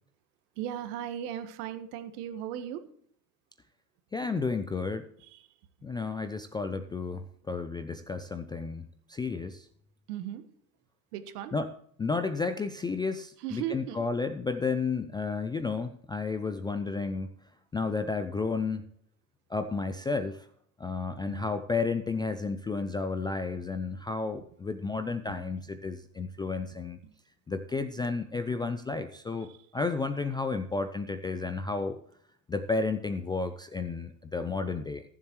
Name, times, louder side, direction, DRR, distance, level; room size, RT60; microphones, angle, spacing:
voice 1, 0.6-2.8 5.2-5.5 10.1-10.4 11.1-11.5 13.4-14.0 21.1-21.5 29.4-29.6, right 11 dB, 65° right, 10 dB, 1.5 m, -37 dB
voice 2, 4.1-5.1 5.8-9.7 11.5-17.4 17.7-18.9 19.5-20.5 20.8-27.0 27.5-32.0 32.5-35.0, left 4 dB, 10° left, 9 dB, 0.3 m, -32 dB
21.0 x 7.4 x 3.1 m, 0.62 s
hypercardioid pair, 95°, 49 cm